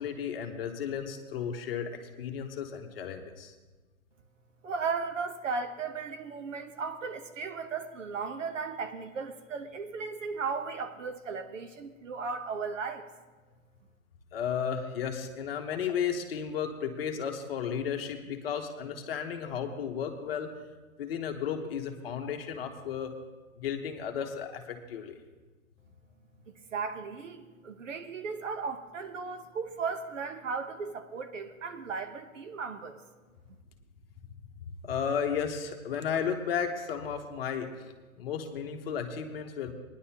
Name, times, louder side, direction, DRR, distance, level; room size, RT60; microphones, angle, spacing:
voice 1, 0.0-1.9 2.2-3.5 14.3-20.5 21.0-23.1 23.6-25.2 34.6-39.7, left 7 dB, 45° left, 4 dB, 1.2 m, -34 dB
voice 2, 4.6-13.1 26.5-33.0, right 5 dB, 60° right, 8 dB, 1.1 m, -36 dB
19.0 x 10.5 x 2.9 m, 1.2 s
hypercardioid pair, 145°, 42 cm